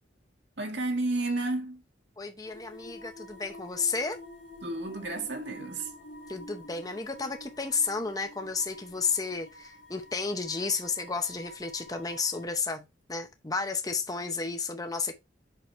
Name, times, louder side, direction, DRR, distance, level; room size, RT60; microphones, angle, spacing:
voice 1, 0.6-1.8 4.6-5.9, right 2 dB, 70° right, 1.9 m, -31 dB
voice 2, 2.2-4.2 6.3-12.8 13.1-15.2, left 4 dB, 20° left, 0.8 m, -32 dB
sound 1, 2.5-12.4, left 1 dB, 80° left, 2.2 m, -48 dB
6.8 x 6.0 x 3.2 m
head